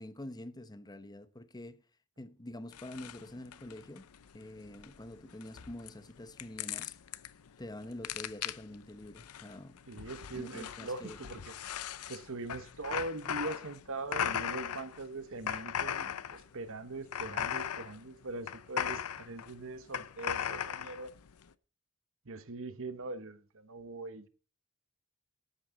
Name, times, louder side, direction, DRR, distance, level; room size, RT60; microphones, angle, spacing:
voice 1, 0.0-1.8 2.2-4.1 4.3-7.0 7.6-9.8 10.3-11.2, left 1 dB, 20° left, 0.8 m, -46 dB
sound 1, 2.7-21.5, left 9 dB, 80° left, 0.6 m, -39 dB
voice 2, 9.9-11.5 12.1-21.1 22.2-24.3, right 2 dB, 65° right, 1.2 m, -42 dB
13.0 x 9.4 x 4.0 m
head